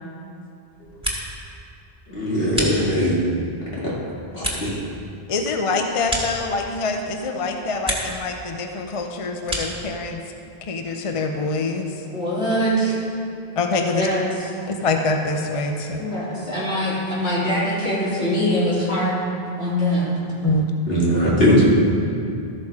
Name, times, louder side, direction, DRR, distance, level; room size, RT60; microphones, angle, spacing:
sound 1, 0.7-1.5 1.8-3.3 3.7-7.0 7.3-8.3 8.6-9.9, right 1 dB, 5° right, 1.8 m, -31 dB
voice 1, 2.1-3.2 3.8-3.9 4.3-4.7 20.9-21.6, equal, 65° left, -7 dB, 2.6 m, -19 dB
voice 2, 5.3-10.2 10.6-12.0 13.6-14.1 14.7-16.0 20.4-20.7, left 3 dB, 40° left, 4 dB, 0.6 m, -25 dB
voice 3, 12.1-12.9 13.9-14.5 16.0-19.2 19.6-20.2, equal, 80° left, -9 dB, 3.4 m, -23 dB
13.5 x 6.5 x 4.8 m, 2.5 s
omnidirectional pair, 1.0 m